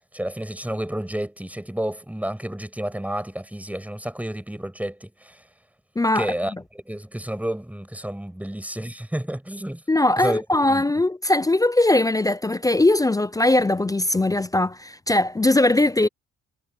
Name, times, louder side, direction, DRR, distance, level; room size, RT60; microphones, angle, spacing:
voice 1, 0.1-5.4 6.1-9.8 10.2-10.8, right 1 dB, 5° right, 7.2 m, -31 dB
voice 2, 6.0-6.3 9.9-16.1, left 2 dB, 10° left, 0.5 m, -20 dB
cardioid pair, 90°, 30 cm